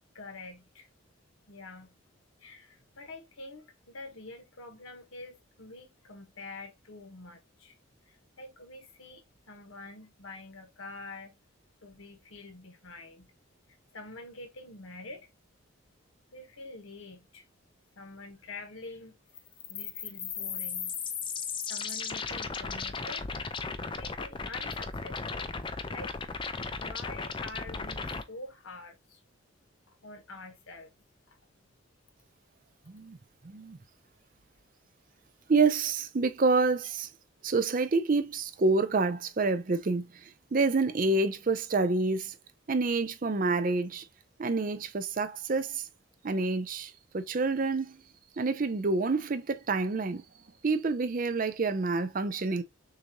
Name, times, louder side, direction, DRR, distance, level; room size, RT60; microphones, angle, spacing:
voice 1, 0.1-0.9 1.5-1.9 2.4-7.7 8.1-11.4 11.8-13.3 13.9-15.3 16.3-17.4 17.9-19.1 19.7-21.0 21.7-23.2 24.0-25.5 25.9-26.1 26.8-29.2 30.0-30.9, left 2 dB, 80° left, 1.4 m, -46 dB
sound 1, 19.3-28.2, left 5 dB, 25° left, 0.4 m, -36 dB
voice 2, 32.9-33.2 33.4-33.8 35.5-37.1 37.4-40.1 40.5-42.3 42.7-44.1 44.4-45.8 46.2-48.0 48.4-50.2 50.6-52.6, right 3 dB, 40° right, 0.5 m, -28 dB
6.5 x 2.6 x 2.9 m
head